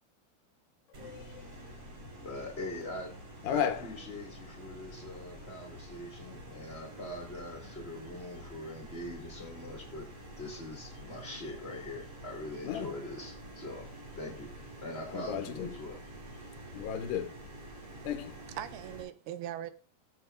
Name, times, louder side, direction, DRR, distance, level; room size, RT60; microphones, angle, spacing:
sound 1, 0.9-19.0, right 1 dB, 45° right, 5.2 m, -48 dB
voice 1, 1.0-1.4 3.4-3.9 12.6-13.0 15.1-15.7 16.7-17.3 18.0-18.3, left 9 dB, 85° left, 3.2 m, -34 dB
voice 2, 2.2-3.1 3.5-10.0 10.4-13.9 14.1-14.5 14.8-16.0, left 1 dB, 20° left, 1.7 m, -42 dB
voice 3, 17.8-19.7, right 12 dB, 80° right, 2.5 m, -42 dB
18.0 x 7.5 x 2.5 m
omnidirectional pair, 4.6 m